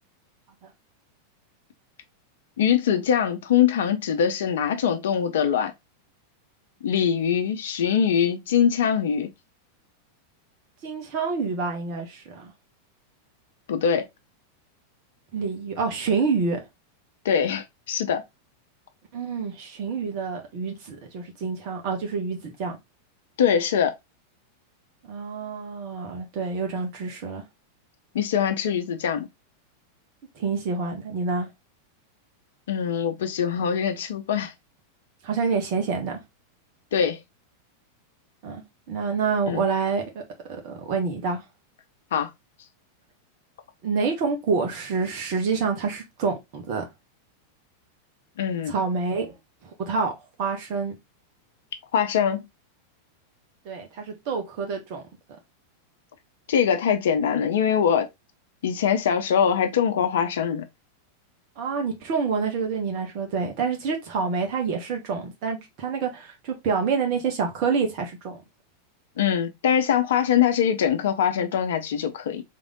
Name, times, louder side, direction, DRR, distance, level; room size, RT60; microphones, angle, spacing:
voice 1, 2.6-5.7 6.8-9.3 13.7-14.1 17.2-18.2 23.4-23.9 28.1-29.3 32.7-34.5 36.9-37.2 39.5-39.6 42.1-42.3 48.4-48.7 51.9-52.4 56.5-58.1 58.6-60.6 69.2-72.4, left 8 dB, 60° left, 0.7 m, -23 dB
voice 2, 10.8-12.5 15.3-16.6 19.1-22.8 25.1-27.4 30.3-31.5 35.2-36.2 38.4-38.6 38.9-40.2 40.6-41.4 43.8-46.8 48.7-49.3 49.6-50.9 53.6-55.0 61.6-68.4, right 5 dB, 45° right, 1.5 m, -27 dB
3.7 x 3.5 x 3.7 m
figure-of-eight pair, 90°, 0 cm